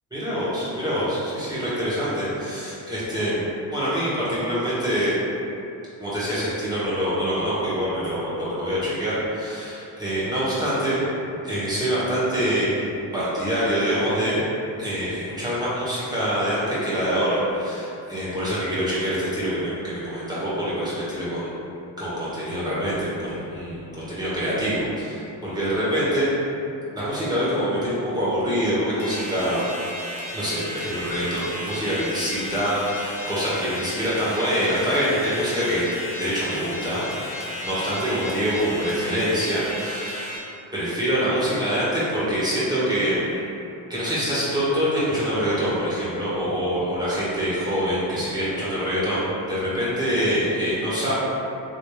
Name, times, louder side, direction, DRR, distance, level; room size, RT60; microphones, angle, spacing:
voice 1, 0.1-3.4 3.7-5.1 6.0-11.0 11.4-12.9 13.1-14.4 14.8-21.5 22.0-26.3 26.9-29.6 30.3-35.8 36.2-40.3 40.7-43.4 43.9-51.1, equal, 10° right, -10 dB, 1.5 m, -25 dB
sound 1, 29.0-40.4, left 1 dB, 60° left, 1.4 m, -34 dB
3.0 x 3.0 x 3.3 m, 2.7 s
cardioid pair, 75°, 48 cm